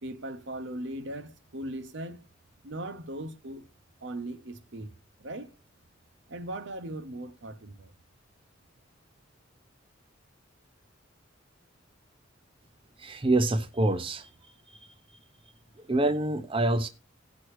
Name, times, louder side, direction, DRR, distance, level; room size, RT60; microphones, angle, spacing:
voice 1, 0.0-2.2 2.6-3.7 4.0-4.9 5.2-5.5 6.3-7.9, right 1 dB, 65° right, 0.9 m, -38 dB
voice 2, 13.0-14.9 15.8-16.9, right 2 dB, 25° right, 0.6 m, -27 dB
16.5 x 6.2 x 3.1 m
head